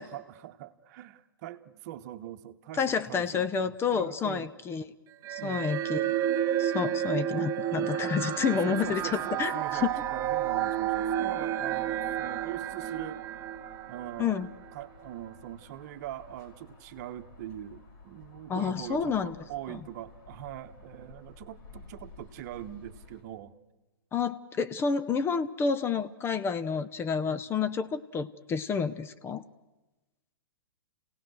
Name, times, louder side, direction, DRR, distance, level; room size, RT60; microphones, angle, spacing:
voice 1, 0.0-4.5 5.4-5.7 8.5-13.2 13.9-23.6 27.2-27.4, right 12 dB, 50° right, 10 dB, 1.2 m, -42 dB
voice 2, 2.8-4.8 5.3-6.1 6.6-9.9 14.2-14.5 18.5-19.4 19.7-19.8 24.1-29.4, left 6 dB, 20° left, 12 dB, 0.8 m, -29 dB
sound 1, 5.2-14.7, right 11 dB, 25° right, 0.8 m, -31 dB
sound 2, 8.8-23.2, left 4 dB, 55° left, 5.2 m, -53 dB
28.5 x 17.5 x 6.4 m, 1.1 s
hypercardioid pair, 115°, 12 cm